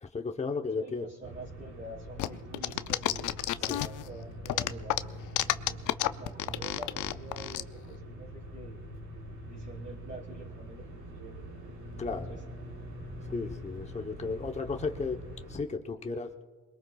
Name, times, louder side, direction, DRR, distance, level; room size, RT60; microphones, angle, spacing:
voice 1, 0.0-1.0 3.6-3.8 12.0-12.4 13.3-15.2 15.5-16.3, left 4 dB, 20° left, 5 dB, 0.9 m, -34 dB
voice 2, 0.6-5.9 6.2-8.8 9.5-11.5 12.3-12.4, right 2 dB, 35° right, -4 dB, 3.5 m, -47 dB
sound 1, 1.2-15.5, equal, 85° right, 4.9 m, -44 dB
sound 2, 2.2-4.1 4.5-7.6, left 14 dB, 80° left, 0.6 m, -30 dB
27.5 x 21.5 x 2.3 m, 1.3 s
cardioid pair, 90°, 30 cm